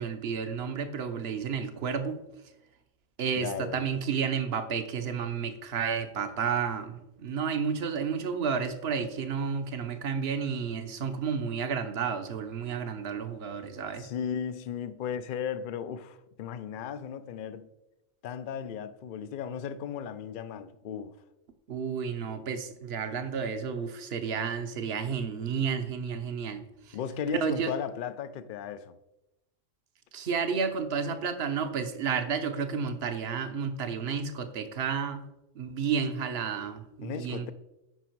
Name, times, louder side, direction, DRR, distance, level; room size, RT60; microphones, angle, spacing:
voice 1, 0.0-2.2 3.2-14.1 21.7-27.0 27.4-27.7 30.1-35.3 35.5-37.5, right 6 dB, 55° right, 1.1 m, -31 dB
voice 2, 3.4-3.9 14.0-17.7 18.2-21.1 26.9-29.0 37.0-37.5, left 7 dB, 55° left, 0.6 m, -36 dB
9.2 x 6.0 x 4.6 m
omnidirectional pair, 1.3 m